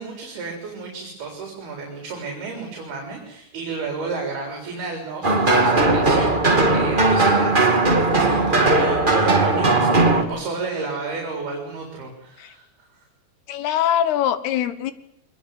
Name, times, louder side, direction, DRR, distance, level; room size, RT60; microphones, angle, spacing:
voice 1, 0.0-13.0, right 4 dB, 75° right, 2 dB, 6.0 m, -33 dB
sound 1, 5.2-10.2, right 2 dB, 25° right, 1.2 m, -18 dB
voice 2, 13.5-14.9, left 10 dB, 90° left, 13 dB, 3.5 m, -22 dB
23.5 x 20.5 x 9.4 m, 0.73 s
omnidirectional pair, 4.5 m